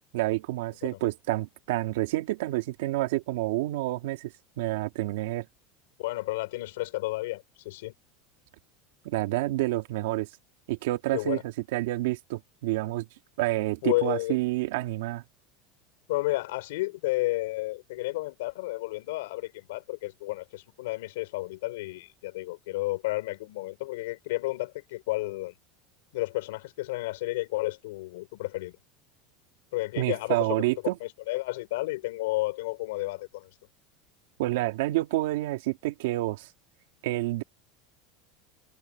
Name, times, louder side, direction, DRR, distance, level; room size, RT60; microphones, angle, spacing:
voice 1, 0.0-5.5 9.0-10.3 10.7-11.4 11.7-13.1 13.4-15.2 30.0-31.0 34.4-36.5 37.0-37.4, right 18 dB, 80° right, 2.4 m, -28 dB
voice 2, 6.0-7.9 11.1-11.4 13.8-14.4 16.1-25.5 26.1-28.8 29.7-33.5, left 20 dB, 85° left, 4.3 m, -32 dB
supercardioid pair, 170°, 0 cm